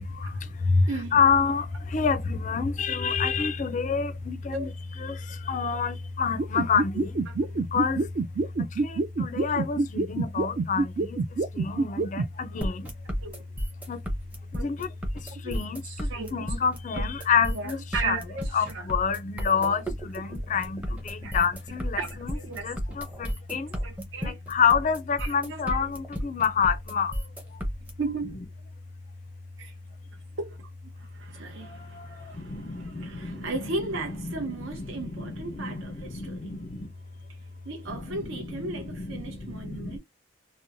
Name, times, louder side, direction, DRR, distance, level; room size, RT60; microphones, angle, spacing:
voice 1, 0.0-4.7 5.0-7.2 7.5-8.1 8.6-11.2 11.5-12.9 13.9-14.0 14.5-18.2 18.5-22.4 22.6-23.7 24.2-27.6 31.6-33.5 34.2-36.9 37.9-40.0, left 6 dB, 40° left, 0.4 m, -28 dB
voice 2, 0.9-1.3 4.5-4.7 6.2-6.4 7.0-7.5 8.5-8.6 13.2-13.4 14.5-14.7 15.3-16.6 16.9-17.1 17.5-18.9 19.8-19.9 20.4-20.5 21.2-21.4 22.0-22.7 23.8-24.4 25.2-25.9 28.0-28.4 29.6-29.7 30.4-30.6 31.0-36.7 37.6-40.0, right 3 dB, 70° right, 0.7 m, -36 dB
sound 1, 6.4-12.3, right 3 dB, 45° right, 0.3 m, -26 dB
sound 2, 12.6-27.9, equal, 10° right, 0.6 m, -32 dB
2.9 x 2.0 x 2.5 m
head